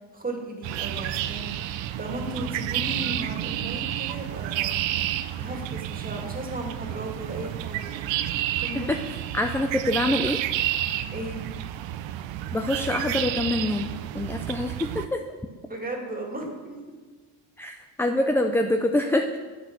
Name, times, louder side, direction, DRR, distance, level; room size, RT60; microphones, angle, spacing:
voice 1, 0.1-4.8 5.4-7.9 8.6-8.9 11.1-11.5 15.7-17.0, right 1 dB, 20° right, 1 dB, 2.1 m, -36 dB
sound 1, 0.6-15.1, right 12 dB, 70° right, 0.6 m, -30 dB
voice 2, 8.7-10.4 12.5-13.9 14.1-15.2 17.6-19.4, left 1 dB, 5° left, 5 dB, 0.4 m, -25 dB
8.0 x 6.0 x 5.9 m, 1.4 s
supercardioid pair, 80°, 48 cm